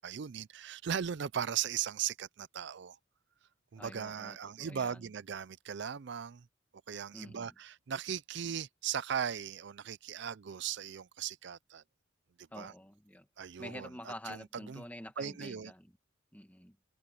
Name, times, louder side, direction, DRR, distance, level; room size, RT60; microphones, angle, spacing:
voice 1, 0.0-3.0 3.7-6.5 6.9-11.8 12.4-12.7 13.4-14.8 15.2-15.7, right 8 dB, 55° right, 0.4 m, -38 dB
voice 2, 3.8-5.1 7.1-7.5 12.5-13.3 13.6-15.9 16.3-16.8, left 1 dB, 10° left, 1.6 m, -48 dB
head